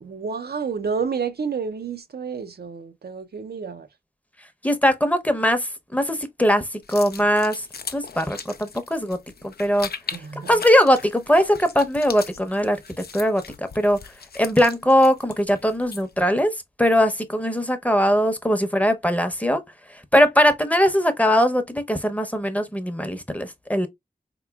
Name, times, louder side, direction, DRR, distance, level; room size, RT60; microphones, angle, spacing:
voice 1, 0.0-3.9 10.1-10.6, right 5 dB, 85° right, 0.5 m, -30 dB
voice 2, 4.6-7.7 7.9-9.2 9.4-14.0 14.3-19.6 19.9-23.9, equal, 10° left, 0.7 m, -21 dB
sound 1, 6.8-16.2, left 5 dB, 80° left, 0.4 m, -39 dB
4.0 x 3.0 x 2.2 m
wide cardioid pair, 40°, 16 cm